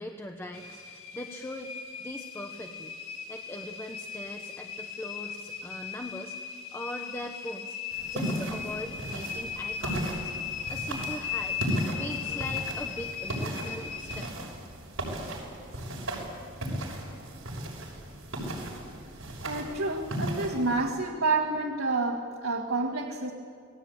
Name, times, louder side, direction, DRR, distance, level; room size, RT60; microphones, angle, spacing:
voice 1, 0.0-1.7 2.0-7.8 8.0-10.3 10.7-11.6 11.9-14.6, left 1 dB, 10° left, 3 dB, 1.1 m, -41 dB
sound 1, 0.5-14.3, left 7 dB, 85° left, 1.8 m, -38 dB
sound 2, 7.9-20.9, right 1 dB, 70° right, 6.4 m, -36 dB
voice 2, 19.4-23.3, right 3 dB, 90° right, 0 dB, 2.2 m, -29 dB
28.5 x 19.0 x 8.8 m, 2.2 s
head